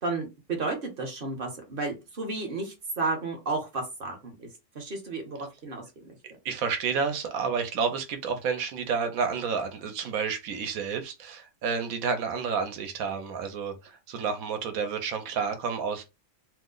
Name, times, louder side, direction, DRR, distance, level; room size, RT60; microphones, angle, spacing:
voice 1, 0.0-4.5 4.7-6.2, right 3 dB, 45° right, 0.9 m, -32 dB
voice 2, 6.4-16.0, right 6 dB, 85° right, 1.1 m, -30 dB
2.7 x 2.1 x 3.7 m
omnidirectional pair, 1.4 m